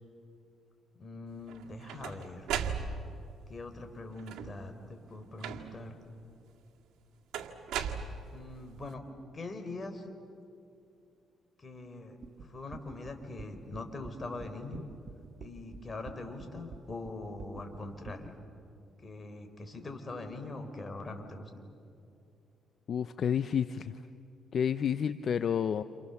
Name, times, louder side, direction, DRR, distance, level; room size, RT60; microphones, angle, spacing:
voice 1, 1.0-2.5 3.5-5.9 8.3-9.0 9.3-10.1 11.6-14.8 15.4-18.3 19.0-21.5, left 2 dB, 30° left, 5 dB, 4.1 m, -42 dB
sound 1, 1.5-3.3 4.2-4.7 5.4-6.0 7.3-8.6, right 7 dB, 85° right, 1.9 m, -37 dB
sound 2, 12.2-18.3, right 5 dB, 60° right, 1.6 m, -47 dB
voice 2, 22.9-24.0 24.5-25.8, left 8 dB, 55° left, 12 dB, 0.7 m, -30 dB
29.0 x 29.0 x 7.1 m, 2.5 s
cardioid pair, 90°, 0 cm